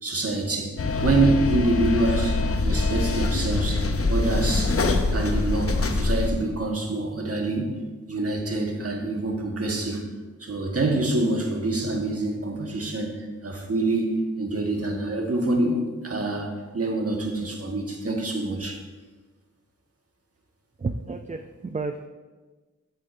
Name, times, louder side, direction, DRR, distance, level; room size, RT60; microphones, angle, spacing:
voice 1, 0.0-4.8 5.1-7.8 8.1-10.0 10.4-18.8, right 2 dB, 45° right, 1 dB, 1.5 m, -26 dB
sound 1, 0.8-6.3, left 3 dB, 45° left, 0.7 m, -24 dB
voice 2, 20.8-22.1, right 3 dB, 25° right, 6 dB, 0.4 m, -31 dB
11.0 x 7.4 x 2.7 m, 1.3 s
wide cardioid pair, 70°, 32 cm